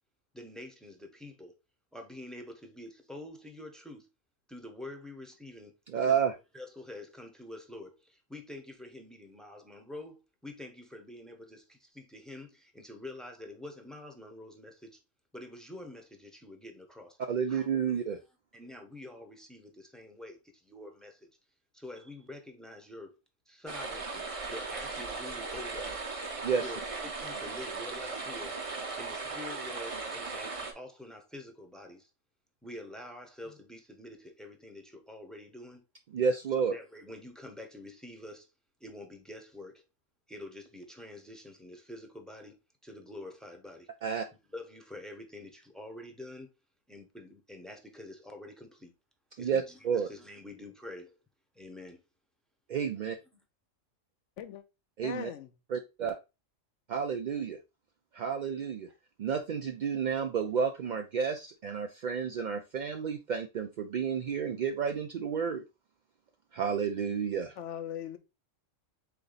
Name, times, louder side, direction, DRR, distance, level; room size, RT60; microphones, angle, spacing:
voice 1, 0.3-0.9 1.2-1.5 1.9-4.0 4.5-5.8 6.0-6.2 6.5-15.0 15.3-17.2 17.5-18.2 18.5-21.3 21.7-23.2 23.5-26.1 26.6-28.7 29.0-32.1 32.6-35.8 36.7-38.5 38.8-39.8 40.3-43.9 44.5-46.5 46.9-48.9 49.4-51.2 51.5-52.0, left 1 dB, ahead, 0.7 m, -47 dB
voice 2, 5.9-6.3 17.3-18.2 26.4-26.7 36.1-36.7 44.0-44.3 49.4-50.1 52.7-53.2 55.0-55.3 55.7-56.1 56.9-57.6 58.1-58.9 59.2-65.6 66.5-67.5, right 6 dB, 70° right, 0.4 m, -31 dB
sound 1, 23.7-30.7, right 3 dB, 30° right, 0.7 m, -38 dB
voice 3, 55.0-55.5 67.6-68.2, left 10 dB, 70° left, 0.9 m, -39 dB
3.9 x 3.4 x 3.8 m
omnidirectional pair, 1.3 m